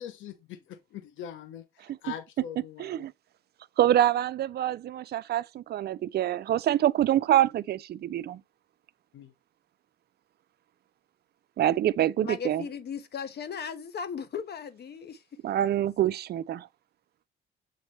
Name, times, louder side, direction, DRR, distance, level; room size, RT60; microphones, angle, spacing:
voice 1, 0.0-3.1 9.1-9.3, left 9 dB, 80° left, 0.9 m, -42 dB
voice 2, 2.8-3.1 3.8-8.4 11.6-12.6 15.4-16.7, right 12 dB, 55° right, 0.5 m, -25 dB
voice 3, 12.2-15.2, left 6 dB, 55° left, 1.1 m, -37 dB
7.8 x 3.8 x 3.2 m
cardioid pair, 90°, 20 cm